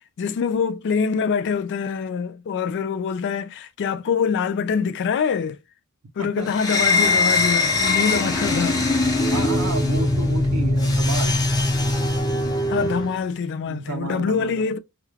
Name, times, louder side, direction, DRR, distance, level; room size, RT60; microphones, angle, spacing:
voice 1, 0.2-5.6 6.2-8.9 12.7-14.8, left 6 dB, 55° left, 0.3 m, -24 dB
sound 1, 6.5-13.1, left 2 dB, 15° left, 0.6 m, -21 dB
voice 2, 9.3-11.3 13.6-14.8, right 3 dB, 80° right, 0.7 m, -31 dB
2.3 x 2.2 x 3.2 m
head